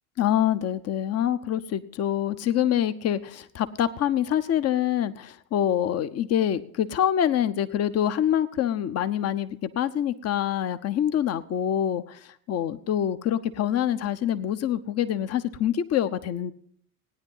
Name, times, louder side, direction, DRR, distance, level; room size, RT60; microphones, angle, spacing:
voice 1, 0.2-12.2 12.5-16.5, left 10 dB, 35° left, 13 dB, 0.9 m, -25 dB
17.0 x 9.8 x 5.6 m, 0.66 s
figure-of-eight pair, 75°, 45 cm